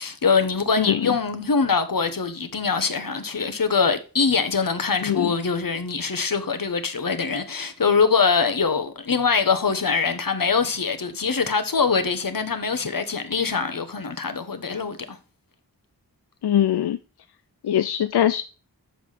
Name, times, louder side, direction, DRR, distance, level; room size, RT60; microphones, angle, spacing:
voice 1, 0.0-15.2, left 5 dB, 60° left, 1.2 m, -23 dB
voice 2, 0.8-1.1 5.0-5.3 16.4-17.0 17.6-18.5, left 10 dB, 85° left, 0.5 m, -22 dB
7.0 x 5.8 x 6.5 m
wide cardioid pair, 60°, 39 cm